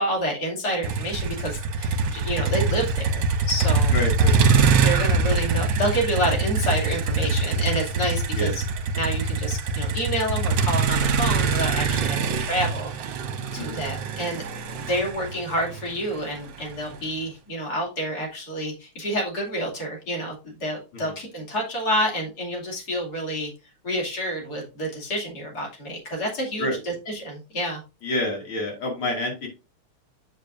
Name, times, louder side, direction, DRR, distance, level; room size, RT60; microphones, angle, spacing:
voice 1, 0.0-3.9 4.7-8.6 8.9-12.9 13.5-14.4 14.8-23.5 23.8-27.8, equal, 45° left, -1 dB, 3.0 m, -28 dB
Motor vehicle (road), 0.8-16.9, right 4 dB, 65° right, 1.4 m, -24 dB
voice 2, 3.9-4.9 8.3-8.5 13.6-13.9 14.1-14.3 21.0-21.2 26.6-26.8 28.0-29.5, left 1 dB, 70° left, 0 dB, 3.2 m, -29 dB
8.2 x 6.8 x 2.5 m, 0.29 s
omnidirectional pair, 2.4 m